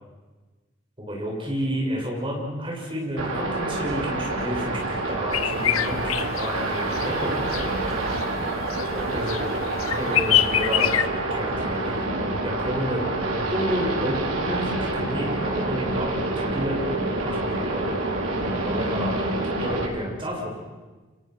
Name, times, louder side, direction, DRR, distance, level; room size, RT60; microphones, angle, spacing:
voice 1, 1.0-7.5 8.9-9.5 9.9-12.1 12.4-17.9 18.5-19.2 19.6-20.5, equal, 25° right, -1 dB, 6.8 m, -30 dB
sound 1, 3.2-19.8, right 2 dB, 80° right, 4.6 m, -27 dB
sound 2, 5.3-11.1, left 11 dB, 85° left, 0.9 m, -27 dB
30.0 x 26.5 x 6.2 m, 1.3 s
head